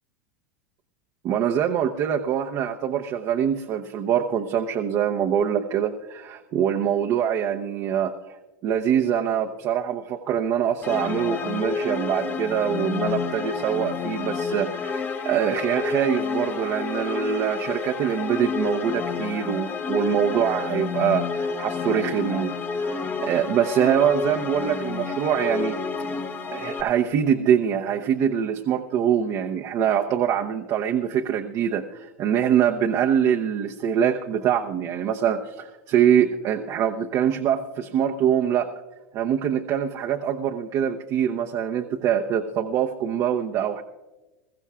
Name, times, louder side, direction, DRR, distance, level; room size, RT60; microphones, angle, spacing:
voice 1, 1.2-8.1 8.6-22.5 22.8-25.8 26.5-38.7 39.1-43.8, right 9 dB, 45° right, 2 dB, 0.8 m, -24 dB
sound 1, 10.8-26.8, left 5 dB, 25° left, 1.0 m, -29 dB
21.5 x 14.5 x 2.4 m, 1.1 s
hypercardioid pair, 105°, 8 cm